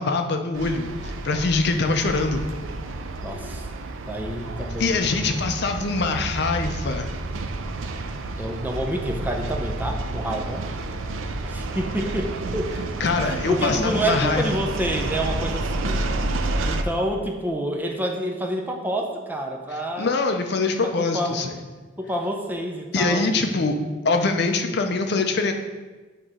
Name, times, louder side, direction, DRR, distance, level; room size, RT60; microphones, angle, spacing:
voice 1, 0.0-2.5 4.8-7.1 13.0-14.4 20.0-21.5 22.9-23.8 24.0-25.5, left 3 dB, 60° left, 5 dB, 0.6 m, -23 dB
sound 1, 0.5-16.8, right 2 dB, 90° right, 0.5 m, -30 dB
voice 2, 3.2-3.7 4.1-5.1 8.4-10.6 11.4-12.7 13.2-16.1 16.6-20.1 20.8-21.5 22.0-23.3, right 1 dB, 10° right, 1 dB, 0.6 m, -28 dB
8.6 x 3.0 x 4.9 m, 1.3 s
head